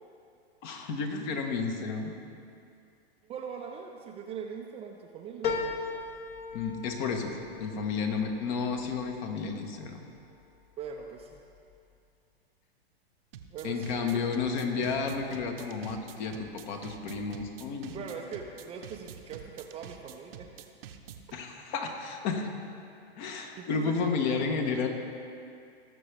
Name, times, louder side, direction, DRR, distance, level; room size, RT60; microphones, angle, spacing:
voice 1, 0.6-2.1 6.5-10.1 13.6-18.0 21.3-22.5 23.2-24.9, left 5 dB, 45° left, 4 dB, 1.4 m, -32 dB
voice 2, 3.3-5.5 10.8-11.4 13.5-14.4 17.9-20.5 23.6-24.4, right 6 dB, 20° right, 2 dB, 0.5 m, -41 dB
sound 1, 5.4-10.2 10.7-11.4 11.7-11.8, left 4 dB, 30° left, 1.0 m, -38 dB
sound 2, 13.3-21.3, right 8 dB, 60° right, 0.9 m, -47 dB
17.5 x 6.9 x 3.5 m, 2.5 s
hypercardioid pair, 115°, 32 cm